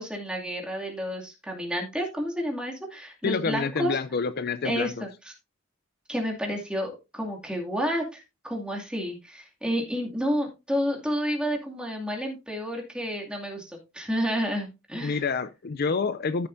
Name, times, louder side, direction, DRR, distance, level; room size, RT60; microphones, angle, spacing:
voice 1, 0.0-4.0 4.6-5.3 6.1-15.3, equal, 5° right, 2.4 m, -30 dB
voice 2, 3.2-5.0 15.0-16.5, left 5 dB, 50° left, 0.5 m, -28 dB
13.5 x 7.0 x 2.6 m
head